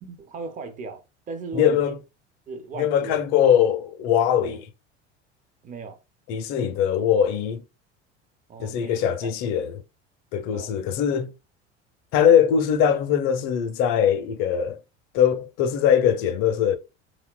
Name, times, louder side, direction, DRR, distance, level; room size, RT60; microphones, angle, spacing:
voice 1, 0.0-2.0 2.5-3.3 4.4-4.6 5.6-6.0 8.5-9.5 10.5-10.7, right 4 dB, 25° right, 0.5 m, -38 dB
voice 2, 1.5-2.0 2.8-4.7 6.3-7.6 8.6-9.7 10.3-11.3 12.1-14.8 15.1-16.8, left 9 dB, 50° left, 0.5 m, -21 dB
2.7 x 2.1 x 2.3 m
hypercardioid pair, 70°, 35 cm